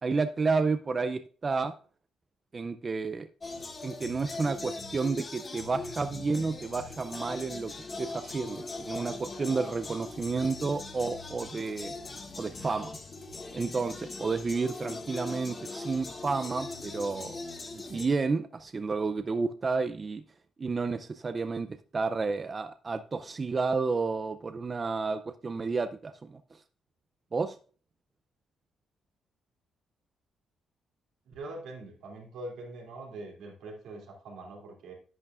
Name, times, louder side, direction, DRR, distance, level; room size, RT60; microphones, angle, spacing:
voice 1, 0.0-1.7 2.5-3.3 3.8-7.7 8.0-11.9 12.4-13.0 13.5-17.4 17.7-20.2 20.6-26.4 27.3-27.6, right 4 dB, 35° right, 0.4 m, -31 dB
sound 1, 3.4-18.1, left 3 dB, 35° left, 1.8 m, -40 dB
voice 2, 31.3-34.9, right 2 dB, 85° right, 2.7 m, -43 dB
10.5 x 8.6 x 2.4 m
cardioid pair, 90°, 0 cm